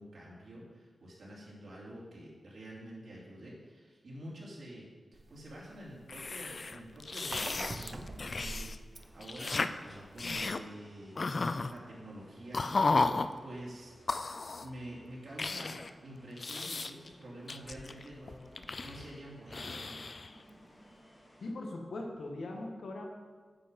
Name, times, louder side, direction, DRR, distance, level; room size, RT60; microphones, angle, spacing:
voice 1, 0.0-4.9 5.3-11.2 11.7-12.6 13.4-14.0 14.5-18.4 18.8-20.0, right 1 dB, 65° right, -5 dB, 3.0 m, -48 dB
sound 1, 5.1-10.5, right 2 dB, 35° right, 0.6 m, -45 dB
sound 2, 6.1-8.8 9.0-9.7 10.2-10.6 11.2-11.7 12.5-13.3 14.1-14.7 15.4-15.9 16.4-17.1 17.5-19.2 19.5-20.3, left 3 dB, 45° left, 0.4 m, -34 dB
sound 3, 8.9-21.5, equal, 20° left, 1.9 m, -60 dB
voice 2, 21.4-23.1, left 2 dB, 80° left, 1 dB, 1.5 m, -40 dB
8.9 x 7.5 x 5.3 m, 1.4 s
wide cardioid pair, 145°, 0 cm